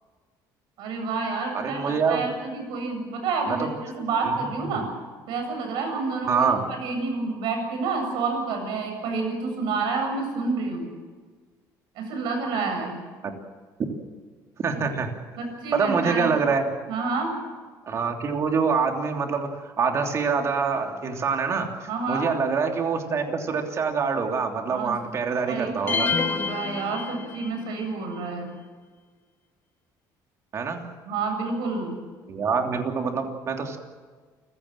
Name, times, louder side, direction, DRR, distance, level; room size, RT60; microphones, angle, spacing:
voice 1, 0.8-4.9 5.3-10.9 12.0-13.0 15.4-16.3 16.9-17.3 21.9-22.3 24.7-25.0 25.5-28.5 31.1-32.0, right 4 dB, 75° right, 4 dB, 7.8 m, -29 dB
voice 2, 1.6-2.3 3.5-3.6 4.3-4.4 4.7-4.8 6.2-6.6 13.2-13.3 14.6-15.1 15.7-16.7 17.9-26.1 30.5-30.9 32.3-33.8, right 5 dB, 35° right, 3 dB, 3.1 m, -25 dB
sound 1, 25.9-27.7, left 5 dB, 25° left, 1.2 m, -28 dB
28.5 x 16.5 x 7.6 m, 1.5 s
cardioid pair, 155°, 8 cm